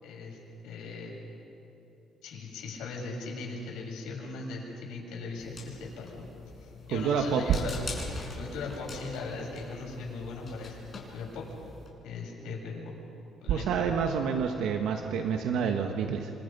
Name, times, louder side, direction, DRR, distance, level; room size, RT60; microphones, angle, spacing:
voice 1, 0.0-0.4 0.6-1.2 2.2-6.2 6.6-7.8 8.4-10.8 11.1-11.4 12.0-12.9 13.4-13.7, left 3 dB, 90° left, -3 dB, 7.8 m, -39 dB
sound 1, 5.4-11.9, left 3 dB, 35° left, 6.3 m, -43 dB
voice 2, 6.9-7.4 13.5-16.3, right 6 dB, 80° right, 4 dB, 1.5 m, -28 dB
27.5 x 26.0 x 5.5 m, 2.9 s
cardioid pair, 120°, 0 cm